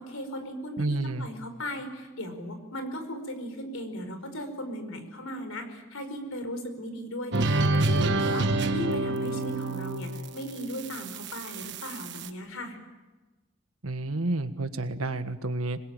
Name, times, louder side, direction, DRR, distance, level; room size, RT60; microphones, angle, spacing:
voice 1, 0.0-12.8, equal, 90° left, 8 dB, 5.0 m, -37 dB
voice 2, 0.8-1.3 13.8-15.8, right 2 dB, 90° right, 9 dB, 1.6 m, -30 dB
sound 1, 7.3-12.3, right 2 dB, 55° right, 1.3 m, -28 dB
26.5 x 21.0 x 9.0 m, 1.2 s
head